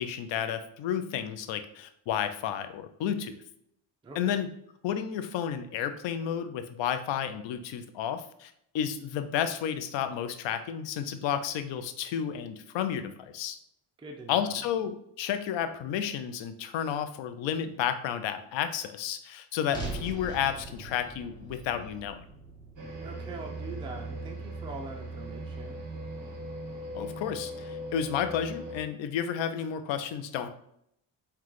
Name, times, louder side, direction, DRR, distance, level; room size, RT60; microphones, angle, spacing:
voice 1, 0.0-3.4 4.2-4.5 4.8-13.6 14.3-22.2 26.9-30.5, left 9 dB, 85° left, 10 dB, 0.6 m, -32 dB
voice 2, 4.0-4.4 14.0-14.6 23.0-25.8, right 2 dB, 10° right, 1 dB, 0.4 m, -43 dB
sound 1, 19.7-24.0, right 2 dB, 10° left, 1.2 m, -41 dB
sound 2, 22.8-28.8, right 1 dB, 45° right, 1.3 m, -39 dB
5.7 x 2.3 x 3.2 m, 0.73 s
cardioid pair, 115°, 44 cm